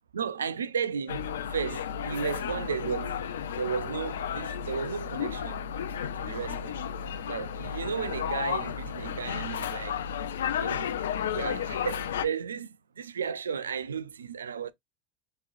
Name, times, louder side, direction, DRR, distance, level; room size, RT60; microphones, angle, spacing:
voice 1, 0.1-1.2 1.5-3.1 3.6-5.6 6.2-6.8 7.3-10.0 10.6-10.9 11.3-12.7 13.0-14.7, right 7 dB, 90° right, 0.4 m, -34 dB
sound 1, 1.1-12.2, left 8 dB, 80° left, 0.4 m, -33 dB
3.7 x 3.1 x 2.5 m
hypercardioid pair, 85°, 0 cm